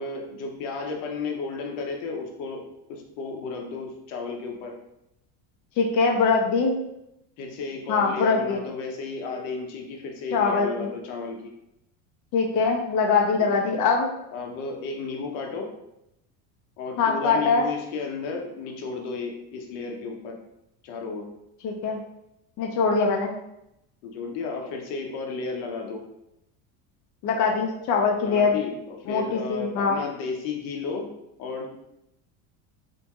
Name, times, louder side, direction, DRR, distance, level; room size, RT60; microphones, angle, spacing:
voice 1, 0.0-2.6 2.9-4.7 7.4-11.5 13.4-13.6 14.3-15.7 16.8-20.4 20.8-21.3 24.0-26.0 28.2-31.1 31.4-31.7, left 4 dB, 80° left, 2 dB, 0.8 m, -33 dB
voice 2, 5.8-6.8 7.9-8.6 10.3-10.9 12.3-14.1 17.0-17.7 21.6-22.0 22.6-23.3 27.2-28.6 29.1-30.0, left 4 dB, 50° left, 0 dB, 0.6 m, -22 dB
4.1 x 2.8 x 2.3 m, 0.84 s
cardioid pair, 130°, 39 cm